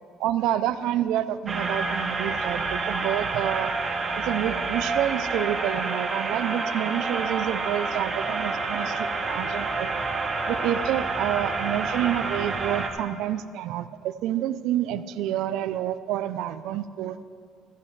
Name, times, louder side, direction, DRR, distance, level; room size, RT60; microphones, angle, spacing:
voice 1, 0.2-3.7 4.1-9.9 10.5-17.2, right 12 dB, 70° right, 13 dB, 0.5 m, -28 dB
sound 1, 1.5-12.9, right 3 dB, 25° right, 1.1 m, -28 dB
14.5 x 12.0 x 3.2 m, 2.1 s
cardioid pair, 130°, 0 cm